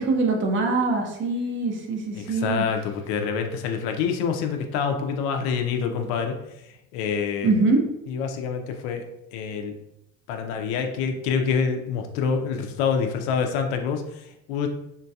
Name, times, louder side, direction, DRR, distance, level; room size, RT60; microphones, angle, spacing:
voice 1, 0.0-2.6 7.4-7.8, right 3 dB, 35° right, 2 dB, 0.7 m, -23 dB
voice 2, 2.1-6.4 6.6-7.5 8.1-9.0 9.3-9.7 10.3-14.7, left 6 dB, 80° left, 5 dB, 0.6 m, -26 dB
3.7 x 2.2 x 2.7 m, 0.84 s
supercardioid pair, 115°, 33 cm